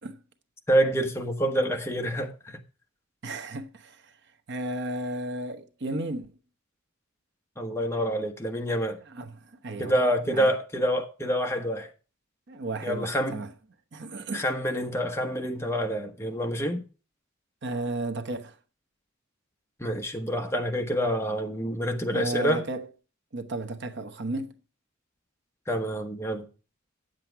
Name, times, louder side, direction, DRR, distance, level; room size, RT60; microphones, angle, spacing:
voice 1, 0.7-2.6 7.6-9.0 9.8-11.9 12.8-13.4 14.3-16.8 19.8-22.6 25.7-26.5, equal, 15° left, 1.2 m, -27 dB
voice 2, 3.2-4.1 4.5-6.4 9.0-10.0 10.3-10.5 12.5-13.5 13.9-14.4 17.6-18.6 22.1-22.9 23.3-24.5, right 2 dB, 60° right, 1.0 m, -34 dB
9.1 x 7.7 x 4.6 m
head